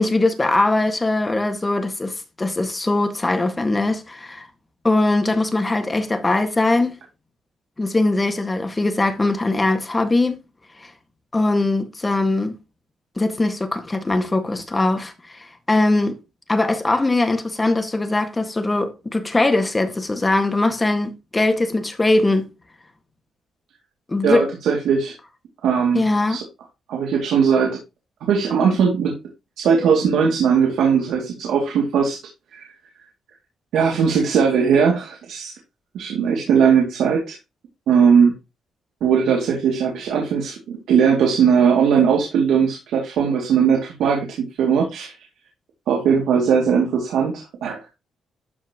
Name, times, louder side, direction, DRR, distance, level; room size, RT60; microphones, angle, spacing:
voice 1, 0.0-4.5 4.8-7.0 7.8-10.4 10.8-10.9 11.3-12.5 13.2-16.2 16.5-22.5 24.1-24.5 25.9-26.4, left 2 dB, 20° left, 1.7 m, -21 dB
voice 2, 24.2-25.1 25.6-26.0 26.3-26.4 26.9-27.8 28.2-29.2 29.6-32.2 32.5-32.6 33.7-35.5 35.9-37.4 37.9-38.3 39.0-44.3 44.6-45.1 45.9-47.8, right 6 dB, 85° right, 2.4 m, -19 dB
12.5 x 5.7 x 3.0 m
cardioid pair, 85°, 0 cm